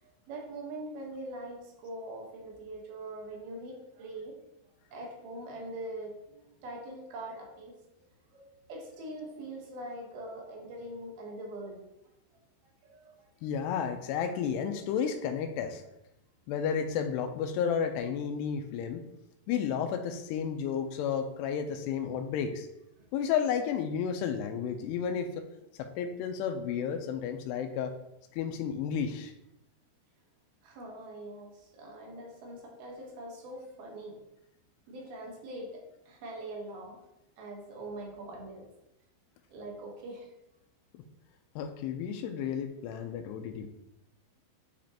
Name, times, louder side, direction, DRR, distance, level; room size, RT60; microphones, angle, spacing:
voice 1, 0.0-4.4 4.9-7.8 8.3-11.8 12.8-13.1 23.0-23.1 30.6-34.2 34.9-37.0 37.4-38.7 39.5-40.3, right 1 dB, 70° right, 0 dB, 2.9 m, -43 dB
voice 2, 13.4-15.8 16.5-19.0 19.5-22.7 23.1-25.5 25.8-28.0 28.3-29.3 41.6-43.7, left 7 dB, 85° left, 6 dB, 2.7 m, -32 dB
9.0 x 5.2 x 2.9 m, 0.86 s
omnidirectional pair, 4.8 m